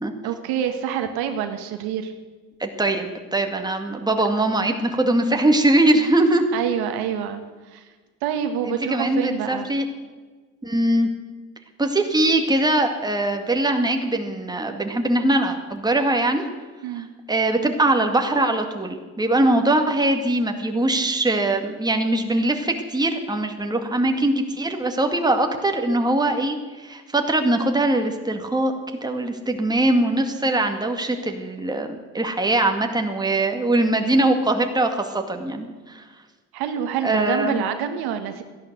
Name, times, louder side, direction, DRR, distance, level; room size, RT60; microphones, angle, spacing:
voice 1, 0.2-2.1 6.5-7.8 8.2-9.7 16.8-17.1 36.5-38.4, right 9 dB, 75° right, 7 dB, 1.7 m, -27 dB
voice 2, 2.6-6.4 8.6-9.8 10.6-11.1 11.8-16.5 16.9-28.7 29.0-31.9 32.1-36.0 37.0-37.6, right 1 dB, 10° right, 4 dB, 2.0 m, -22 dB
14.5 x 11.0 x 8.0 m, 1.4 s
supercardioid pair, 85°, 38 cm